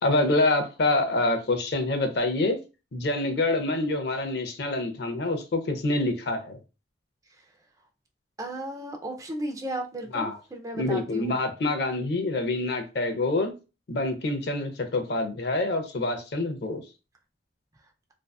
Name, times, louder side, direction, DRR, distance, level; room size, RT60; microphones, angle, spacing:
voice 1, 0.0-2.6 2.9-6.6 10.1-10.3 10.7-13.5 13.9-16.8, left 2 dB, 65° left, 7 dB, 0.5 m, -26 dB
voice 2, 8.4-11.4, right 1 dB, 20° right, 3 dB, 0.3 m, -34 dB
2.6 x 2.2 x 2.3 m, 0.30 s
head